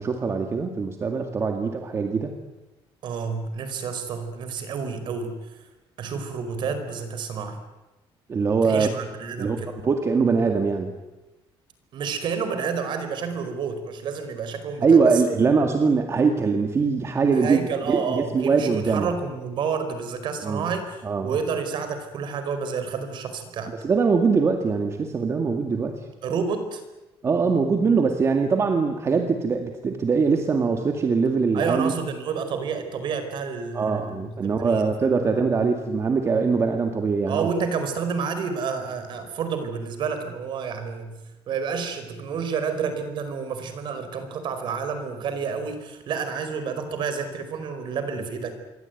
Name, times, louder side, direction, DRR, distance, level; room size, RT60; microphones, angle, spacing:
voice 1, 0.0-2.3 8.3-8.9 9.4-10.9 14.8-17.6 17.9-19.1 20.4-20.7 21.0-21.3 23.7-26.0 27.2-31.9 33.7-37.5, right 5 dB, 30° right, 5 dB, 2.0 m, -22 dB
voice 2, 3.0-5.4 6.0-7.6 8.6-9.8 11.9-15.2 17.3-23.7 26.2-26.8 31.5-35.1 37.2-41.1 41.5-48.5, right 6 dB, 50° right, 9 dB, 4.8 m, -29 dB
27.5 x 23.0 x 9.4 m, 1.0 s
cardioid pair, 170°, 10 cm